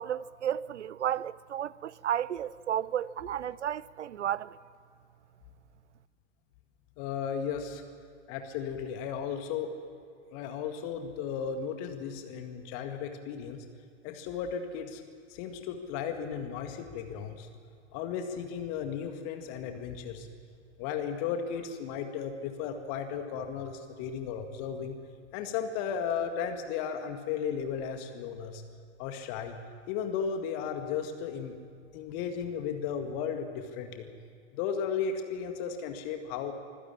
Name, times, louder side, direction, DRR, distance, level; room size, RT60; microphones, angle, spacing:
voice 1, 0.0-4.6, right 10 dB, 75° right, 0.7 m, -33 dB
voice 2, 7.0-7.8 8.3-9.7 10.3-13.6 14.0-15.0 15.3-17.5 17.9-20.3 20.8-25.0 25.3-28.6 29.0-29.6 29.9-31.5 31.9-34.1 34.5-36.5, left 7 dB, 40° left, 2.0 m, -35 dB
25.0 x 16.0 x 8.6 m
figure-of-eight pair, 95°, 36 cm